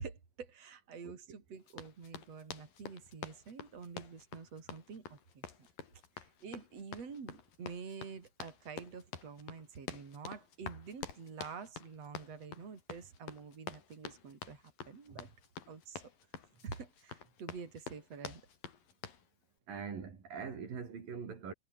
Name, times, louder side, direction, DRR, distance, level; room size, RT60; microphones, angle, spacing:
voice 1, 0.0-5.5 6.2-15.3 15.7-16.0 16.5-18.4, right 5 dB, 45° right, 5.1 m, -48 dB
Run, 1.7-19.2, left 5 dB, 80° left, 5.0 m, -49 dB
voice 2, 19.7-21.5, right 6 dB, 75° right, 5.7 m, -42 dB
omnidirectional pair, 4.0 m